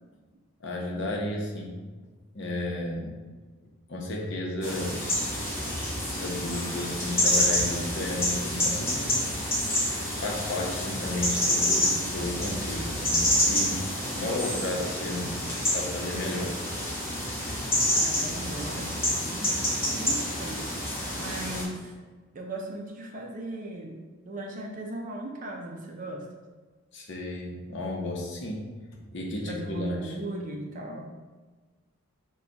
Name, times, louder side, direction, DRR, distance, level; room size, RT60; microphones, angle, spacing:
voice 1, 0.6-1.8 2.3-3.1 3.9-5.0 6.0-9.4 10.2-13.8 14.2-15.3 15.7-16.6 26.9-28.6 29.1-30.1, left 1 dB, 55° left, -1 dB, 0.7 m, -33 dB
sound 1, 4.6-21.6, left 1 dB, 10° left, 0.8 m, -28 dB
voice 2, 14.1-14.5 17.9-20.7 21.1-21.9 22.3-24.0 24.3-26.2 29.5-31.0, right 1 dB, 35° right, 1 dB, 0.5 m, -37 dB
4.5 x 2.3 x 3.9 m, 1.4 s
head